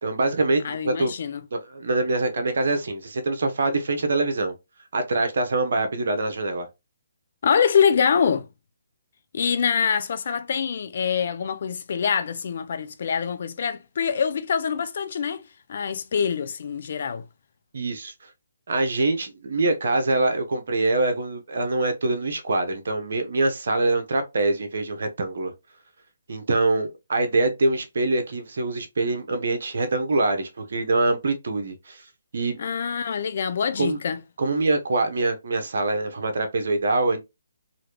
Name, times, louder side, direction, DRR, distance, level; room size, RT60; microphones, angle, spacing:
voice 1, 0.0-1.1 1.5-4.5 4.9-6.7 17.7-18.1 18.7-25.5 26.3-32.0 32.3-32.6 33.8-34.0 34.4-37.2, right 2 dB, 65° right, 0.8 m, -24 dB
voice 2, 0.6-1.4 7.4-8.5 9.3-15.4 15.7-17.2 32.6-34.2, left 7 dB, 55° left, 0.5 m, -24 dB
3.0 x 2.6 x 2.9 m
hypercardioid pair, 145°, 0 cm